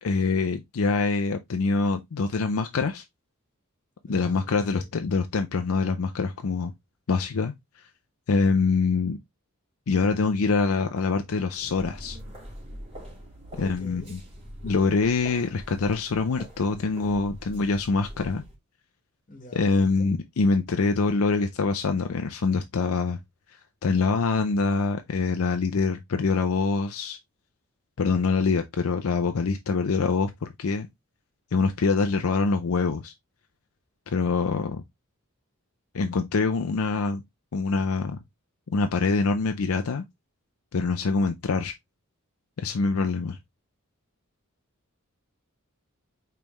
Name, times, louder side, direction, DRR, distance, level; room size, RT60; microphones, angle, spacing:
voice 1, 0.0-3.0 4.1-6.7 7.1-7.9 8.3-9.2 9.9-12.2 13.5-14.2 14.6-18.4 19.5-23.2 23.8-27.2 28.0-30.9 31.5-33.1 34.1-34.8 35.9-37.2 37.5-38.2 38.7-40.0 40.7-41.7 42.6-43.4, left 4 dB, 70° left, 0.5 m, -25 dB
voice 2, 4.0-5.2 13.5-14.2 19.3-19.7 20.0-20.1, left 2 dB, 40° left, 1.4 m, -45 dB
sound 1, 11.5-18.5, equal, 30° right, 2.9 m, -43 dB
5.2 x 3.4 x 3.0 m
head